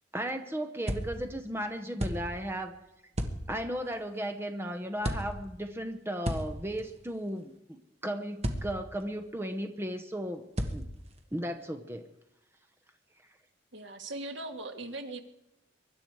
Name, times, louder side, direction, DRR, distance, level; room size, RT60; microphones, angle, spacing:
voice 1, 0.1-2.8 3.5-7.8 8.0-10.5 10.7-10.8 11.3-12.1, equal, 15° right, 7 dB, 0.9 m, -35 dB
sound 1, 0.9-1.4 2.0-2.5 3.2-3.7 5.0-5.6 6.3-7.1 8.4-9.0 10.6-11.2, equal, 35° right, 1.5 m, -35 dB
voice 2, 13.7-15.2, right 2 dB, 70° right, 6 dB, 1.7 m, -39 dB
23.5 x 11.5 x 4.7 m, 0.90 s
head